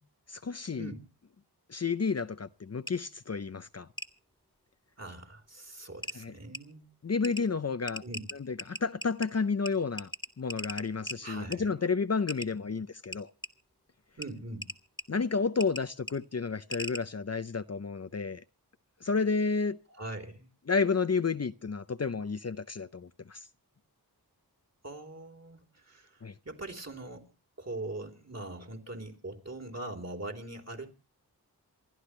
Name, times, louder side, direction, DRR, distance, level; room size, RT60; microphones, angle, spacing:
voice 1, 0.3-0.9 1.7-3.9 6.1-6.3 7.0-8.0 8.5-10.1 10.4-13.3 15.1-18.4 19.0-19.8 20.7-23.4 26.2-26.3, left 4 dB, 40° left, 0.7 m, -31 dB
sound 1, 2.9-3.0 4.0-4.1 5.5-5.6 6.0-6.2 6.5-6.6 7.2-7.4 7.9-9.3 9.7-9.8 10.0-11.2 11.5-11.6 12.3-12.5 13.1-13.5 14.2-14.3 14.6-15.0 15.6-16.1 16.7-17.0, left 1 dB, 10° left, 1.8 m, -38 dB
voice 2, 5.0-6.9 8.0-8.3 11.2-11.7 14.2-14.7 19.9-20.5 24.8-26.2 26.5-27.3 27.6-30.9, right 2 dB, 40° right, 3.5 m, -42 dB
28.5 x 11.5 x 3.2 m
wide cardioid pair, 50°, 39 cm